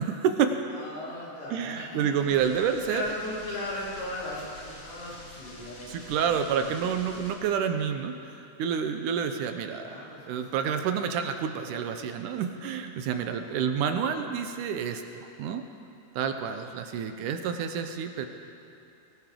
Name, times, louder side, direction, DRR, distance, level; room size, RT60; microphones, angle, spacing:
voice 1, 0.0-0.6 1.5-3.0 5.9-9.9 10.3-15.6 16.2-18.3, right 7 dB, 80° right, 7 dB, 2.2 m, -29 dB
voice 2, 0.7-6.8 9.8-10.8, left 1 dB, 75° left, -8 dB, 6.0 m, -38 dB
sound 1, 2.3-7.3, left 1 dB, 50° left, 3.3 m, -47 dB
19.5 x 18.0 x 3.8 m, 2.6 s
omnidirectional pair, 3.8 m